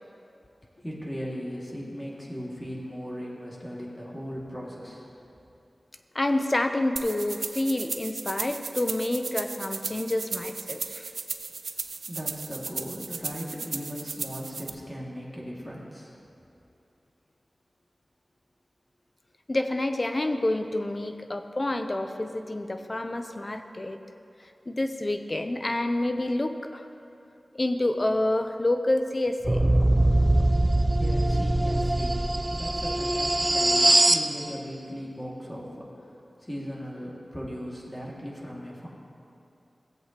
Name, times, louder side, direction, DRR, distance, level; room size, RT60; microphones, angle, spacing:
voice 1, 0.8-5.1 12.1-16.2 31.0-32.2 32.5-38.9, equal, 15° left, -5 dB, 2.2 m, -38 dB
voice 2, 6.1-11.1 19.5-24.0 24.7-26.9 27.5-29.6, left 1 dB, 40° left, 7 dB, 0.6 m, -28 dB
sound 1, 7.0-14.7, right 4 dB, 90° right, 0.4 m, -36 dB
sound 2, 29.4-34.3, right 1 dB, 25° right, 0.5 m, -22 dB
17.0 x 7.8 x 3.0 m, 2.7 s
wide cardioid pair, 60°, 0 cm